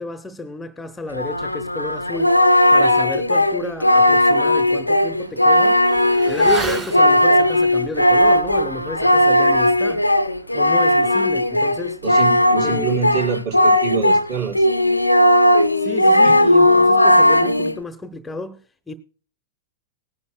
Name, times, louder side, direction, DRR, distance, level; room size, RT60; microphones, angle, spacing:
voice 1, 0.0-5.8 6.3-10.1 10.5-12.0 12.6-13.0 15.8-18.6 18.9-19.0, left 3 dB, 10° left, 0.8 m, -32 dB
Singing, 1.1-14.3 14.5-17.8, left 1 dB, 90° left, 0.6 m, -16 dB
Motorcycle / Accelerating revving vroom, 3.4-3.5 3.9-13.9 14.2-14.3, right 3 dB, 20° right, 2.0 m, -37 dB
voice 2, 12.0-14.6 16.2-16.3, right 6 dB, 40° right, 5.0 m, -25 dB
19.5 x 10.5 x 2.2 m
figure-of-eight pair, 100°, 0 cm